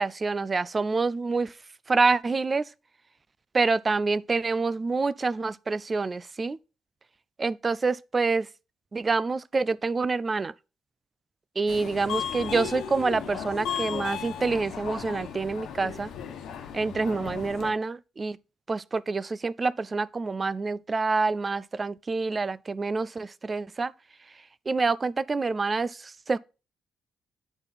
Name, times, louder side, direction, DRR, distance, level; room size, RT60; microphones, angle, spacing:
voice 1, 0.0-1.5 1.9-2.7 3.5-6.6 7.4-8.5 8.9-10.5 11.6-16.1 16.7-18.4 18.7-23.9 24.7-26.4, right 4 dB, 25° right, 0.3 m, -27 dB
Subway metro underground, 11.7-17.7, left 8 dB, 85° left, 1.1 m, -35 dB
8.8 x 4.3 x 4.0 m
cardioid pair, 115°, 0 cm